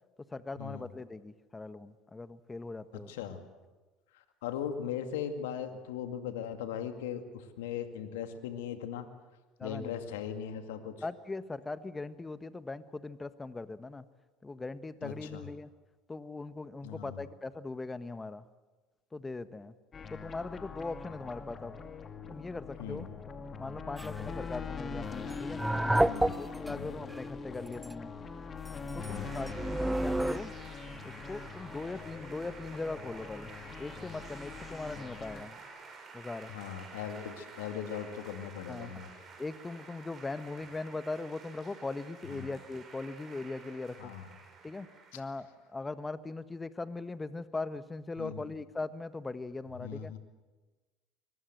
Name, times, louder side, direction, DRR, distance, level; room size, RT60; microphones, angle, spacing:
voice 1, 0.3-3.2 9.6-10.0 11.0-14.0 14.4-15.7 16.1-18.4 19.1-19.7 20.1-21.8 22.3-23.1 23.6-25.1 25.4-25.6 26.4-28.1 28.9-30.5 31.0-33.5 33.8-35.6 36.1-36.5 38.7-38.9 39.4-44.1 44.6-44.9 45.1-50.1, left 3 dB, 15° left, 13 dB, 1.4 m, -40 dB
voice 2, 2.9-3.5 4.1-9.1 9.6-11.0 15.0-15.4 16.8-17.2 22.8-23.1 26.0-26.4 26.7-26.9 29.1-29.4 36.5-39.1 42.3-42.5 44.0-44.3 45.1-45.2 48.2-48.5 49.8-50.2, left 8 dB, 75° left, 7 dB, 2.2 m, -39 dB
sound 1, 19.9-35.4, left 5 dB, 35° left, 2.4 m, -43 dB
sound 2, 24.0-24.3 25.3-26.7 27.1-27.2 27.7-27.9 28.7-30.4, right 1 dB, 5° right, 0.7 m, -30 dB
sound 3, 29.0-45.5, right 4 dB, 35° right, 7.7 m, -51 dB
25.0 x 22.5 x 7.9 m, 1.2 s
hypercardioid pair, 75°, 0 cm